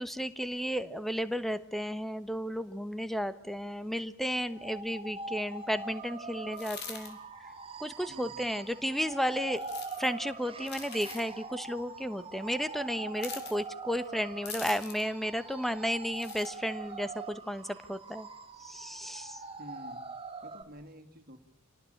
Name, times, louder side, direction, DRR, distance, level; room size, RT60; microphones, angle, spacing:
voice 1, 0.0-7.2 7.8-9.6 10.0-18.3 18.6-19.4, equal, ahead, 12 dB, 1.2 m, -33 dB
sound 1, 4.5-20.6, right 3 dB, 25° right, 2.0 m, -43 dB
sound 2, 6.5-7.1 9.6-10.1 10.6-11.3 13.2-13.6 14.5-15.1 16.1-16.5, left 7 dB, 50° left, 5.6 m, -43 dB
voice 2, 8.1-8.6 19.6-20.1 20.4-21.4, equal, 45° right, 6 dB, 3.2 m, -49 dB
28.0 x 18.5 x 8.9 m, 0.68 s
head